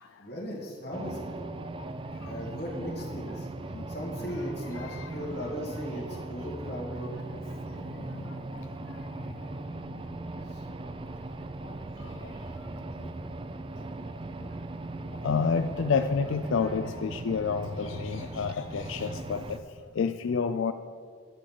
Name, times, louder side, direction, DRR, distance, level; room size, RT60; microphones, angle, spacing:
voice 1, 0.2-1.3 2.2-3.5 3.9-7.1 10.4-10.6, equal, 55° left, -4 dB, 2.4 m, -37 dB
sound 1, 0.9-19.6, right 2 dB, 25° right, 0.4 m, -39 dB
voice 2, 4.7-5.1 8.2-8.3 15.2-19.4 20.0-20.7, left 5 dB, 75° left, 9 dB, 0.4 m, -29 dB
10.5 x 6.3 x 7.6 m, 2.1 s
head